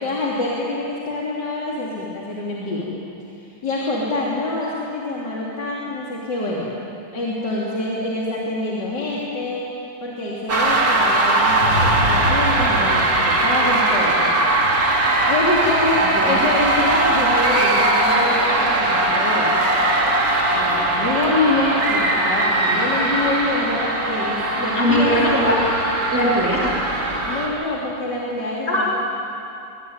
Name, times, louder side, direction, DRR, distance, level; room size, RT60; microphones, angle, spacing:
voice 1, 0.0-2.9 3.3-6.7 7.1-9.6 10.0-14.4 15.2-19.5 20.5-25.4 27.2-28.9, left 2 dB, 55° left, -5 dB, 3.8 m, -25 dB
sound 1, 10.5-27.5, right 2 dB, 45° right, 3.4 m, -19 dB
voice 2, 24.7-25.6 26.1-26.9 28.7-28.9, equal, 5° right, -5 dB, 3.4 m, -20 dB
22.5 x 22.0 x 9.7 m, 2.8 s
omnidirectional pair, 2.3 m